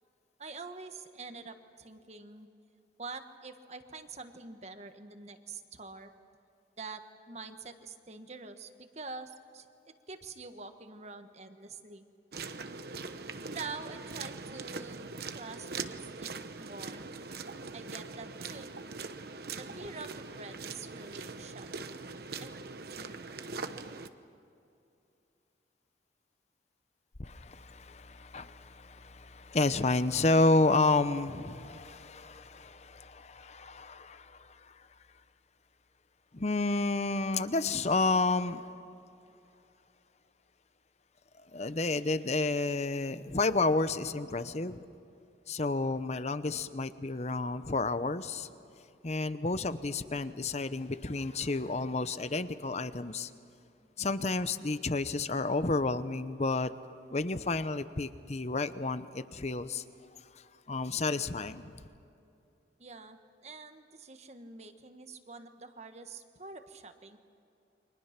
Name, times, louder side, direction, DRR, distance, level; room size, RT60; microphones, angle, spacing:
voice 1, 0.4-2.5 3.0-6.1 6.8-12.0 13.5-15.1 15.3-17.0 17.7-18.7 19.5-22.0 22.4-22.6 23.0-23.2 62.8-67.2, right 4 dB, 40° right, 1.4 m, -46 dB
sound 1, 12.3-24.1, right 4 dB, 60° right, 1.0 m, -42 dB
voice 2, 27.2-34.9 36.3-38.7 41.5-44.9 45.5-48.5 49.0-53.3 54.0-56.7 57.1-59.8 60.3-61.8, left 3 dB, 40° left, 0.8 m, -31 dB
29.5 x 24.5 x 6.0 m
head